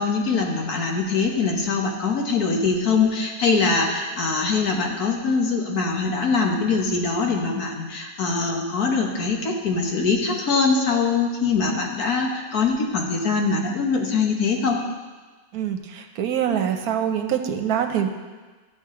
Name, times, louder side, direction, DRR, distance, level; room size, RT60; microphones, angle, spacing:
voice 1, 0.0-14.8, left 4 dB, 75° left, 1 dB, 1.7 m, -23 dB
voice 2, 16.2-18.1, right 9 dB, 80° right, 6 dB, 1.2 m, -24 dB
13.0 x 7.0 x 3.7 m, 1.3 s
omnidirectional pair, 1.6 m